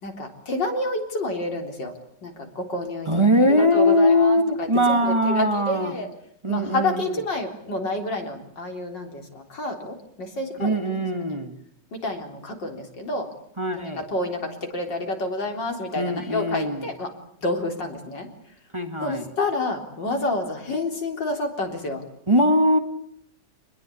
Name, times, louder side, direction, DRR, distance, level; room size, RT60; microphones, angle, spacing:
voice 1, 0.0-1.9 2.2-6.1 6.5-11.0 11.9-13.3 13.8-17.1 17.4-18.3 19.0-22.0, left 2 dB, 85° left, 3 dB, 4.5 m, -29 dB
voice 2, 3.1-5.9 6.4-7.1 10.6-11.5 13.6-14.0 16.0-16.9 18.7-19.3 22.3-22.8, equal, 15° right, 6 dB, 2.0 m, -21 dB
27.0 x 21.0 x 8.6 m, 0.68 s
omnidirectional pair, 1.9 m